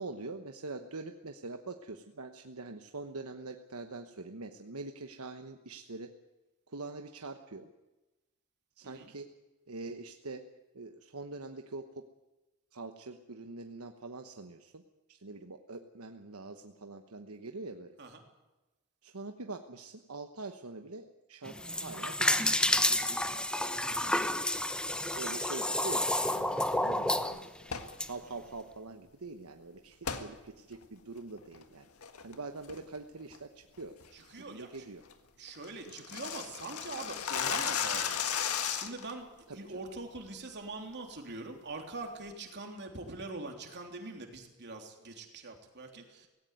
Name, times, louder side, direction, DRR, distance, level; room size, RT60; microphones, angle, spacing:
voice 1, 0.0-6.1 6.7-7.7 8.8-9.3 9.7-10.4 10.7-12.1 12.7-14.8 15.1-17.9 19.0-22.5 23.5-24.2 25.2-27.5 28.0-31.9 32.2-34.0 34.4-35.0 39.5-39.8, right 3 dB, 75° right, 6 dB, 1.2 m, -44 dB
sound 1, 21.5-28.1, left 1 dB, 5° left, 1.0 m, -30 dB
sound 2, 27.6-28.0 30.0-30.3 30.7-30.8 31.4-31.6 32.0-32.3 32.7-33.0 33.3-33.4 33.8-34.1 34.4-34.5 34.8-34.9 35.1-35.2 35.5-39.1, left 7 dB, 85° left, 1.7 m, -34 dB
voice 2, 34.1-34.8 35.4-46.3, right 3 dB, 50° right, 3 dB, 3.4 m, -43 dB
18.0 x 17.0 x 9.4 m, 1.1 s
head